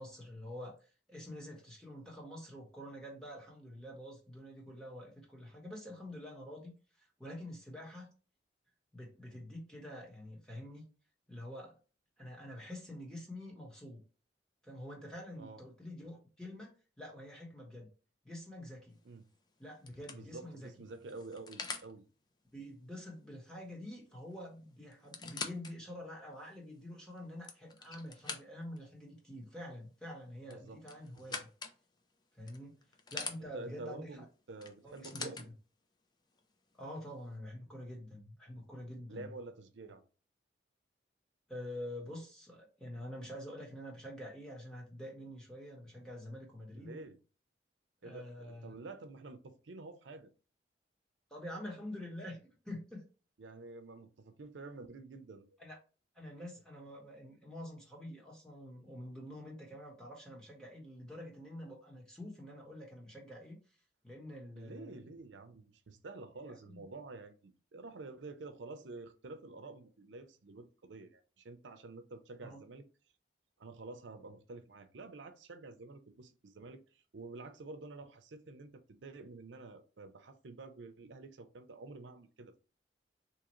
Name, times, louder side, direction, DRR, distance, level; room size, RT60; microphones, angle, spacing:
voice 1, 0.0-8.1 8.9-10.9 11.3-11.8 12.2-14.0 14.6-17.9 18.2-19.0 19.6-20.7 22.5-31.5 32.3-32.8 33.1-34.2 34.8-35.4 36.7-39.3 41.5-47.0 48.0-48.8 51.3-53.0 55.6-55.8 56.1-63.6 64.0-64.9 66.4-66.8 72.4-72.6, left 1 dB, 5° left, 1.1 m, -47 dB
sound 1, 19.0-19.3 19.9-21.9 23.9-24.1 24.3-24.4 24.9-25.7 26.3-26.4 27.2-28.8 30.4-31.8 32.5-33.4 34.6-35.5 36.4-36.5, left 4 dB, 25° left, 0.4 m, -44 dB
voice 2, 20.1-22.1 30.5-30.8 31.1-31.4 33.4-35.5 39.1-40.0 46.7-47.2 48.0-50.3 53.4-55.5 64.6-72.9 73.6-82.6, right 3 dB, 90° right, 0.6 m, -49 dB
3.7 x 2.9 x 3.0 m
head